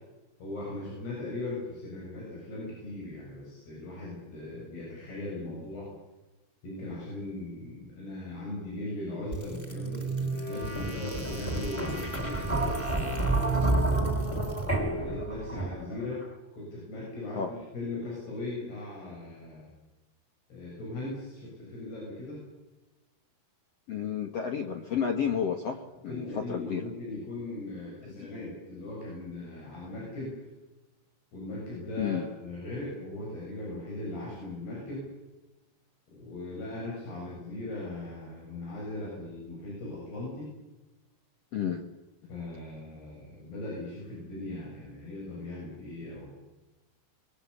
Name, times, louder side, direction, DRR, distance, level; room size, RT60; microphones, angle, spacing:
voice 1, 0.4-5.9 6.6-13.7 14.6-16.2 16.5-19.7 20.5-22.4 26.1-30.3 31.3-35.0 36.1-40.5 42.3-46.3, left 2 dB, 80° left, -4 dB, 9.6 m, -39 dB
sound 1, 9.3-16.1, right 2 dB, 5° left, 2.5 m, -30 dB
voice 2, 23.9-26.8 28.1-28.3 32.0-32.3 41.5-41.8, left 7 dB, 60° left, 4 dB, 1.7 m, -31 dB
24.0 x 21.0 x 8.4 m, 1.1 s
omnidirectional pair, 4.6 m